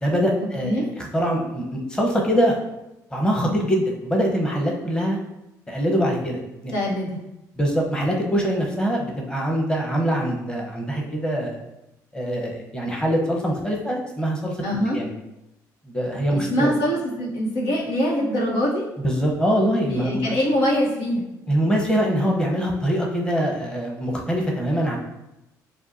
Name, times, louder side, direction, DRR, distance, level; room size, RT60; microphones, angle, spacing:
voice 1, 0.0-2.6 3.1-5.2 5.7-6.7 7.6-11.6 12.1-14.6 14.9-15.1 15.9-16.7 19.0-20.3 21.5-25.0, equal, 10° left, -1 dB, 1.0 m, -23 dB
voice 2, 6.7-7.2 14.6-15.0 16.5-18.9 19.9-21.3, equal, 90° left, -3 dB, 1.2 m, -23 dB
6.9 x 2.4 x 2.8 m, 0.92 s
supercardioid pair, 85°, 8 cm